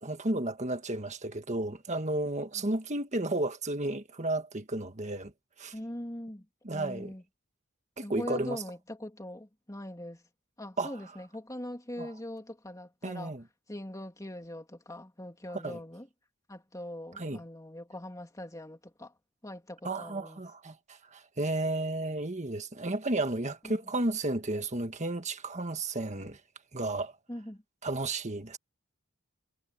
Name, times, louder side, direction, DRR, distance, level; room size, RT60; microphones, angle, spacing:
voice 1, 0.0-5.3 5.6-5.7 6.6-7.1 8.0-8.6 10.8-10.9 12.0-12.1 13.0-13.4 15.5-15.8 17.2-17.4 19.8-26.4 26.7-27.1 27.8-28.6, right 2 dB, 35° right, 1.7 m, -33 dB
voice 2, 5.7-6.5 6.7-7.2 8.0-10.2 10.6-13.3 13.7-16.1 16.5-19.1 19.4-20.4 23.6-23.8 27.3-27.6, left 1 dB, 15° left, 2.9 m, -42 dB
head